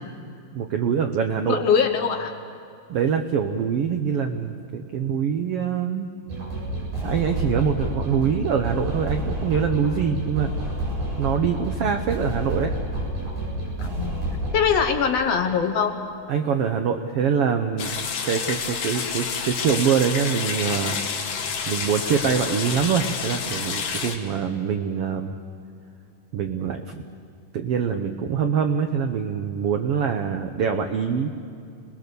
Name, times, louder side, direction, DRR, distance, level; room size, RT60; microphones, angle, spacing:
voice 1, 0.5-1.6 2.9-6.1 7.0-10.5 11.2-12.7 16.3-18.0 18.2-21.0 21.7-25.3 26.3-27.0 27.5-31.3, right 7 dB, 85° right, 6 dB, 1.3 m, -24 dB
voice 2, 1.5-2.3 13.8-14.2 14.5-16.0, left 6 dB, 60° left, 5 dB, 1.9 m, -22 dB
sound 1, 6.3-14.6, right 1 dB, 65° right, 8.7 m, -29 dB
sound 2, 17.8-24.2, left 6 dB, 90° left, 3.5 m, -29 dB
27.5 x 20.0 x 6.8 m, 2.4 s
omnidirectional pair, 3.8 m